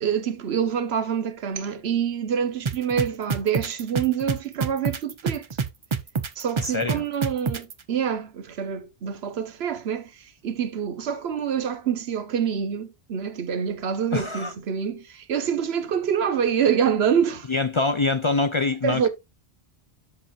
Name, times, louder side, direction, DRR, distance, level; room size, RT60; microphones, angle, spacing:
voice 1, 0.0-5.5 6.4-10.1 10.4-17.5 18.8-19.1, right 8 dB, 80° right, 1.1 m, -26 dB
sound 1, 2.7-7.7, right 5 dB, 35° right, 0.6 m, -26 dB
voice 2, 6.6-7.0 14.1-14.5 17.5-19.1, left 3 dB, 40° left, 0.5 m, -24 dB
13.0 x 4.4 x 2.3 m
omnidirectional pair, 1.1 m